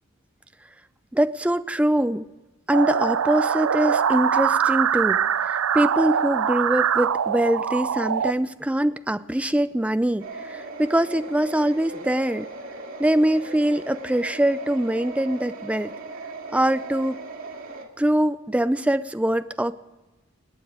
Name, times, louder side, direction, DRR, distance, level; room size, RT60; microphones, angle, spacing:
voice 1, 1.1-2.3 2.7-12.5 13.0-15.9 16.5-17.2 18.0-19.7, right 1 dB, 5° right, 12 dB, 0.4 m, -23 dB
sound 1, 2.7-8.3, right 8 dB, 90° right, 0.5 m, -23 dB
sound 2, 10.2-17.8, right 3 dB, 75° right, 2.5 m, -38 dB
26.5 x 9.3 x 5.0 m, 1.1 s
head